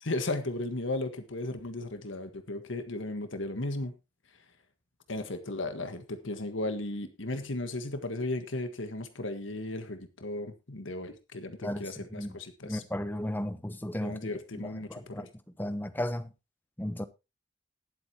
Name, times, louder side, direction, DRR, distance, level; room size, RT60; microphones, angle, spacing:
voice 1, 0.0-3.9 5.1-12.8 13.9-15.3, left 2 dB, 80° left, 1.6 m, -35 dB
voice 2, 11.6-12.4 12.6-15.3 15.6-16.3 16.8-17.1, left 1 dB, 10° left, 0.9 m, -35 dB
20.0 x 8.0 x 3.0 m
head